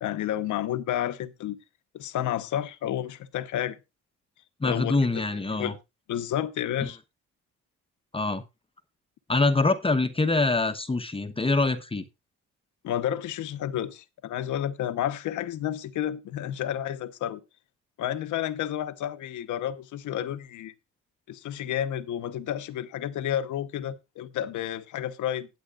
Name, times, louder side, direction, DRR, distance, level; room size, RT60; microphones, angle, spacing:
voice 1, 0.0-1.6 1.9-3.8 4.6-5.8 6.1-7.0 12.8-17.4 18.0-20.7 21.3-25.5, left 11 dB, 75° left, 1.1 m, -31 dB
voice 2, 4.6-5.7 6.8-6.9 8.1-8.4 9.3-12.1, left 3 dB, 20° left, 0.9 m, -24 dB
18.5 x 7.9 x 2.5 m
cardioid pair, 90°, 30 cm